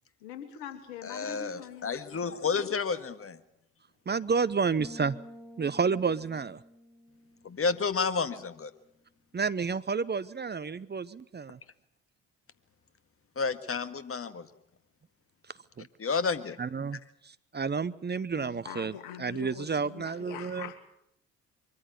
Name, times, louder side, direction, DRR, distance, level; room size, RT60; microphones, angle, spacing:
voice 1, 0.2-2.2 18.3-20.8, left 9 dB, 80° left, 8 dB, 2.6 m, -43 dB
voice 2, 1.0-3.4 7.4-8.7 13.4-14.5 16.0-16.6, left 5 dB, 35° left, 11 dB, 1.8 m, -31 dB
voice 3, 4.1-5.2 5.6-6.6 9.3-11.6 15.8-15.9 16.6-20.7, right 5 dB, 25° right, 16 dB, 0.9 m, -30 dB
sound 1, 4.8-8.5, equal, 5° left, 4.0 m, -50 dB
24.0 x 14.5 x 9.4 m, 0.76 s
hypercardioid pair, 50°, 37 cm